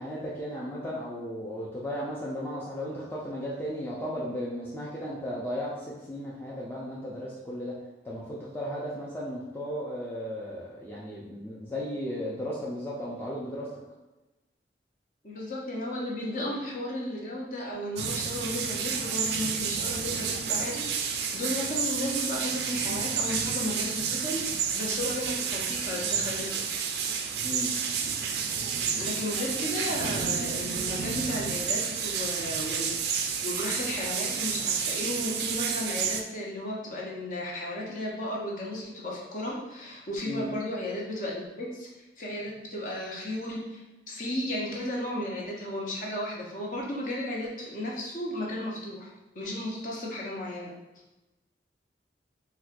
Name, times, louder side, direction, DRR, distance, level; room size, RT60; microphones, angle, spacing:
voice 1, 0.0-7.7 8.0-13.7 27.4-27.7 40.3-40.5, equal, 10° left, -6 dB, 0.4 m, -35 dB
voice 2, 15.2-26.6 29.0-41.9 42.2-49.1 49.3-50.7, left 1 dB, 45° left, -3 dB, 0.7 m, -34 dB
sound 1, 18.0-36.2, right 6 dB, 65° right, 0.3 m, -30 dB
4.2 x 2.2 x 2.4 m, 1.0 s
head